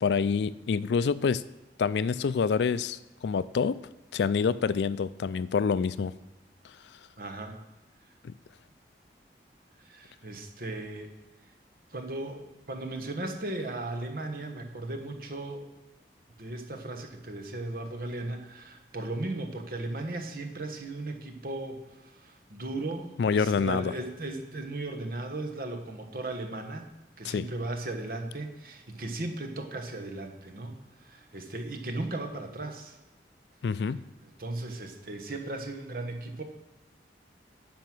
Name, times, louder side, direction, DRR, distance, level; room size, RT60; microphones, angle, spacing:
voice 1, 0.0-1.4 1.8-3.8 4.1-6.1 8.2-8.3 23.2-23.9 27.2-27.5 33.6-34.0, left 5 dB, 75° left, 17 dB, 0.4 m, -27 dB
voice 2, 7.2-7.6 9.8-11.1 11.9-15.7 16.4-26.9 27.2-33.0 34.2-36.4, right 2 dB, 55° right, 5 dB, 1.3 m, -36 dB
10.5 x 5.7 x 6.1 m, 1.1 s
head